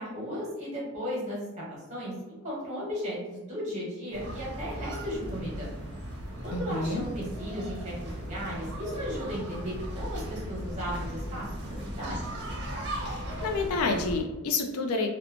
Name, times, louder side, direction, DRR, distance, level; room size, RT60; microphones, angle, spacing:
voice 1, 0.0-5.7 6.4-12.4, equal, 30° right, -5 dB, 1.0 m, -36 dB
sound 1, 4.1-14.2, equal, 50° right, 0.7 m, -37 dB
voice 2, 6.5-7.0 13.1-15.1, left 3 dB, 75° left, 5 dB, 0.4 m, -29 dB
2.7 x 2.1 x 2.8 m, 1.1 s
head